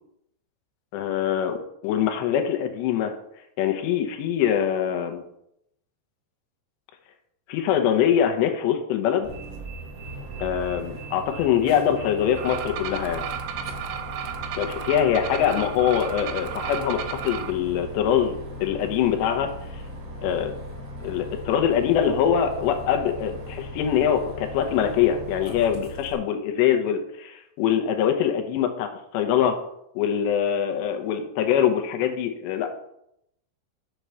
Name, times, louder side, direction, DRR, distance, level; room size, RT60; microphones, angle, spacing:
voice 1, 0.9-1.6 1.8-3.1 3.6-5.2 7.5-9.3 10.4-13.3 14.6-19.5 19.7-19.8 20.2-20.5 21.0-29.6 30.0-32.7, left 9 dB, 75° left, 6 dB, 2.7 m, -23 dB
Bus, 9.2-26.1, equal, 55° right, 1.1 m, -38 dB
sound 1, 12.4-17.5, right 9 dB, 85° right, 3.2 m, -34 dB
7.4 x 4.6 x 6.8 m, 0.77 s
omnidirectional pair, 5.8 m